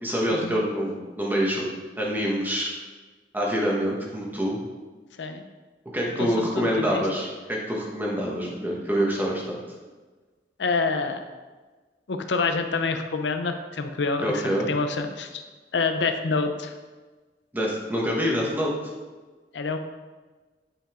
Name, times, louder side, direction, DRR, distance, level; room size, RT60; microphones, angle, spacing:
voice 1, 0.0-1.6 2.0-2.7 3.3-4.6 5.9-9.6 14.2-14.7 17.5-18.7, equal, 10° right, -3 dB, 1.4 m, -26 dB
voice 2, 6.2-7.0 10.6-11.2 12.1-15.4 15.7-16.7 19.5-19.8, left 4 dB, 85° left, 7 dB, 0.6 m, -27 dB
8.7 x 5.6 x 3.7 m, 1.3 s
head